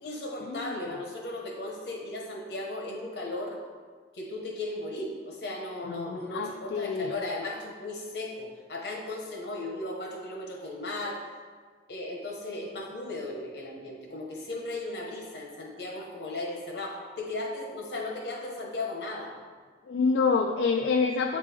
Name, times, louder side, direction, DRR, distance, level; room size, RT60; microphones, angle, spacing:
voice 1, 0.0-3.6 4.1-11.2 11.9-19.3, left 2 dB, 75° left, -1 dB, 1.1 m, -36 dB
voice 2, 5.9-7.1 19.9-21.4, left 4 dB, 90° left, 3 dB, 0.3 m, -27 dB
8.2 x 3.4 x 3.4 m, 1.5 s
head